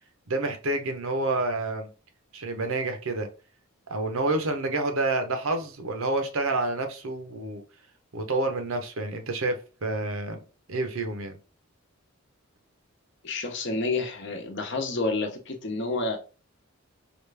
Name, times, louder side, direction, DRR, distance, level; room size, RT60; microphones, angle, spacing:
voice 1, 0.3-1.9 2.3-3.3 3.9-7.6 8.1-11.4, right 2 dB, 75° right, 0.8 m, -29 dB
voice 2, 13.2-16.2, left 3 dB, 55° left, 0.8 m, -29 dB
5.0 x 2.5 x 3.3 m
head